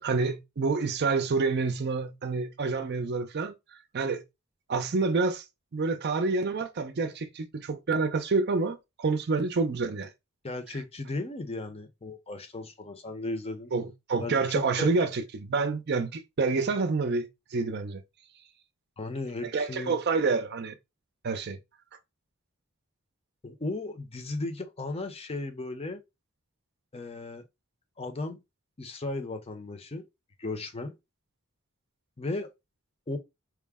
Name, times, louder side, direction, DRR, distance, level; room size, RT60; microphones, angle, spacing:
voice 1, 0.0-3.5 3.9-4.2 4.7-5.4 5.7-10.1 13.7-18.0 19.5-20.7 21.2-21.6, right 4 dB, 50° right, 0.5 m, -28 dB
voice 2, 10.4-13.7 14.2-14.9 19.0-20.0 23.4-26.0 26.9-27.4 28.0-28.4 28.8-30.0 30.4-31.0 32.2-32.5 33.1-33.2, left 2 dB, 30° left, 0.6 m, -35 dB
4.7 x 2.1 x 3.5 m
head